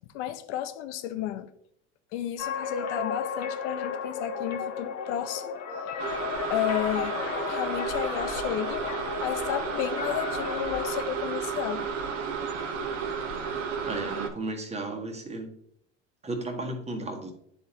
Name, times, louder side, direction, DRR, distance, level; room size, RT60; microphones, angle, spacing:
voice 1, 0.1-1.5 2.1-6.1 6.5-7.2 7.5-8.9 9.2-11.9, left 11 dB, 70° left, 0.8 m, -32 dB
sound 1, 2.4-11.0, left 6 dB, 45° left, 1.1 m, -34 dB
sound 2, 6.0-14.3, right 5 dB, 85° right, 0.9 m, -33 dB
voice 2, 13.9-15.5 16.2-17.3, right 2 dB, 20° right, 1.4 m, -34 dB
10.0 x 4.0 x 2.9 m
hypercardioid pair, 80°, 36 cm